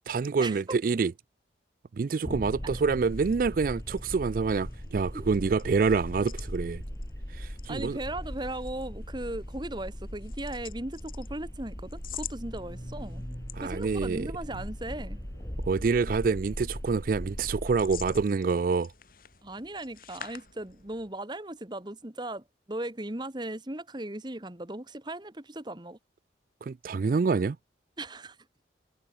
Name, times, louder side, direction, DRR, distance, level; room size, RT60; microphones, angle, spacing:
voice 1, 0.1-1.1 2.0-6.8 7.3-8.0 13.5-14.3 15.6-18.9 26.6-27.6, right 4 dB, 50° right, 0.3 m, -27 dB
sound 1, 2.2-18.2, equal, 15° left, 2.0 m, -39 dB
sound 2, 2.3-21.2, left 10 dB, 50° left, 3.4 m, -50 dB
voice 2, 7.7-13.2 13.6-15.2 19.4-26.0 28.0-28.4, right 1 dB, 25° right, 1.5 m, -37 dB
sound 3, 12.5-16.3, equal, 70° right, 6.5 m, -56 dB
head